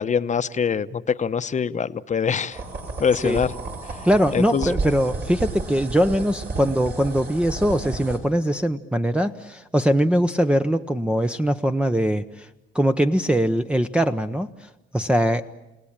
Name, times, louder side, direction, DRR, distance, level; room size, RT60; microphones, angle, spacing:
voice 1, 0.0-2.6 3.0-3.5 3.8-4.1 4.3-4.7, left 6 dB, 35° left, 11 dB, 0.9 m, -24 dB
sound 1, 2.5-8.2, right 3 dB, 55° right, 6.4 m, -32 dB
voice 2, 4.0-12.5 12.7-14.5 14.9-15.4, equal, 5° right, 3 dB, 0.8 m, -21 dB
30.0 x 18.0 x 8.8 m, 1.0 s
cardioid pair, 90°, 20 cm